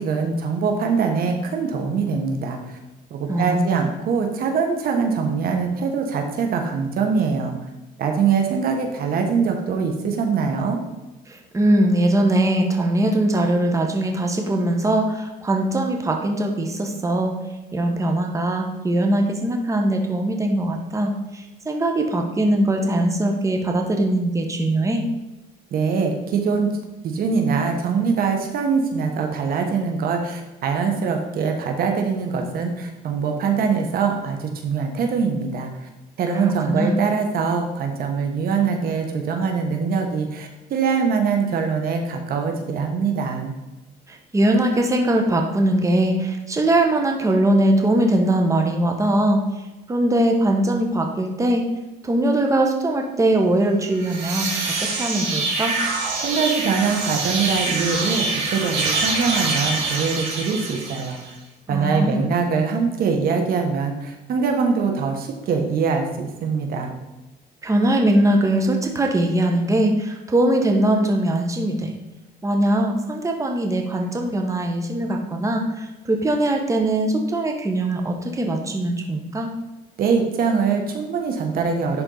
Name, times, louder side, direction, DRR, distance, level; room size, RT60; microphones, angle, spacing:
voice 1, 0.0-2.8 3.1-7.6 8.0-10.8 25.7-26.8 27.0-35.9 36.2-43.5 56.2-61.2 61.7-66.9 80.0-82.0, right 5 dB, 60° right, 4 dB, 1.2 m, -23 dB
voice 2, 3.3-3.7 11.3-17.3 17.7-25.0 36.4-37.0 44.1-49.4 49.9-51.6 52.0-54.5 54.8-55.8 61.7-62.2 67.6-71.9 72.4-79.5, right 1 dB, 20° right, 3 dB, 1.2 m, -21 dB
sound 1, 53.9-61.3, right 3 dB, 85° right, 2.7 m, -25 dB
11.0 x 4.4 x 4.0 m, 1.0 s
cardioid pair, 110°, 17 cm